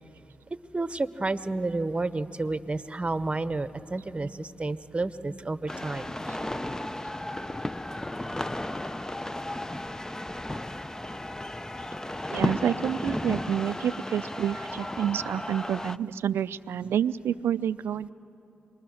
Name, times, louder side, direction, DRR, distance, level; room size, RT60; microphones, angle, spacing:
voice 1, 0.7-6.1, right 2 dB, 30° right, 13 dB, 0.9 m, -30 dB
sound 1, 5.7-16.0, left 1 dB, 15° left, 0.6 m, -34 dB
voice 2, 12.3-18.1, right 9 dB, 80° right, 16 dB, 0.4 m, -28 dB
26.0 x 20.5 x 6.3 m, 2.8 s
supercardioid pair, 45°, 4 cm